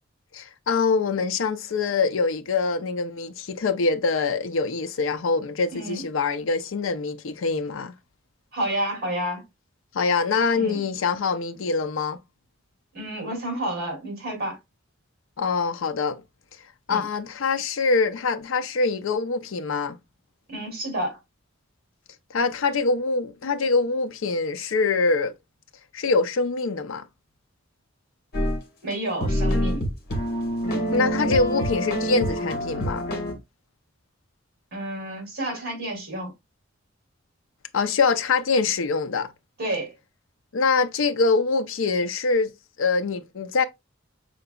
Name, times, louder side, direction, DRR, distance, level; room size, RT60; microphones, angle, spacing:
voice 1, 0.3-7.9 9.9-12.2 15.4-16.2 16.9-20.0 22.3-25.3 25.9-27.0 30.9-33.1 37.7-39.3 40.5-42.5 42.8-43.6, left 4 dB, 70° left, 0.5 m, -24 dB
voice 2, 5.7-6.0 8.5-9.4 10.5-10.8 12.9-14.6 16.9-17.0 20.5-21.2 28.8-29.8 34.7-36.3 39.6-39.9, right 1 dB, 50° right, 2.7 m, -30 dB
sound 1, 28.3-28.6 28.9-29.0 29.2-33.3, equal, 50° left, 1.5 m, -26 dB
5.8 x 3.9 x 2.2 m
head